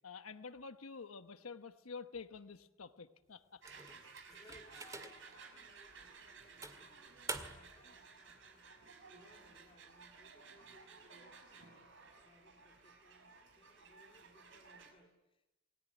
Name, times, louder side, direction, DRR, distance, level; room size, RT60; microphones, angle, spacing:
voice 1, 0.0-3.6 7.6-7.9 11.6-11.7, left 5 dB, 90° left, 10 dB, 1.1 m, -49 dB
sound 1, 3.6-5.4 5.9-6.0 6.6-7.8, right 3 dB, 15° right, 2.0 m, -47 dB
sound 2, 3.6-14.9, right 4 dB, 60° right, 5.6 m, -57 dB
voice 2, 4.2-7.1 7.4-15.5, left 1 dB, 25° left, 1 dB, 3.7 m, -66 dB
28.0 x 21.0 x 9.1 m, 1.0 s
head